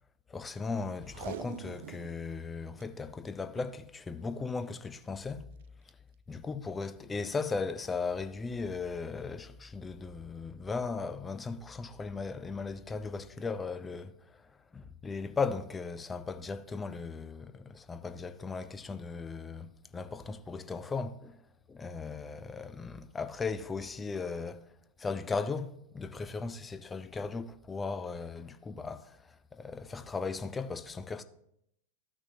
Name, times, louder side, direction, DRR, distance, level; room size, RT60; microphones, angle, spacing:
voice 1, 0.3-5.5 6.3-21.4 21.7-24.6 25.0-31.2, left 4 dB, 15° left, 0.4 m, -37 dB
Packing tape duct tape, 1.0-2.2 2.5-2.6 2.8-2.9 3.5-3.8 4.8-5.0 5.6-5.7, right 13 dB, 55° right, 0.4 m, -45 dB
13.5 x 6.1 x 2.7 m
figure-of-eight pair, 90°, 0 cm